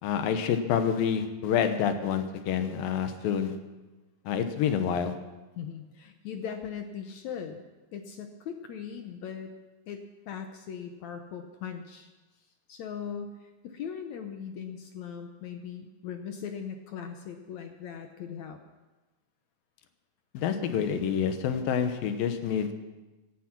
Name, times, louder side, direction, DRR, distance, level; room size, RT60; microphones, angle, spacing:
voice 1, 0.0-3.6 4.3-5.1 20.3-22.7, left 8 dB, 85° left, 8 dB, 2.9 m, -28 dB
voice 2, 5.6-7.6 7.9-9.5 9.9-12.1 12.7-18.6, left 7 dB, 70° left, 6 dB, 1.9 m, -39 dB
17.5 x 11.0 x 6.0 m, 1.1 s
omnidirectional pair, 4.0 m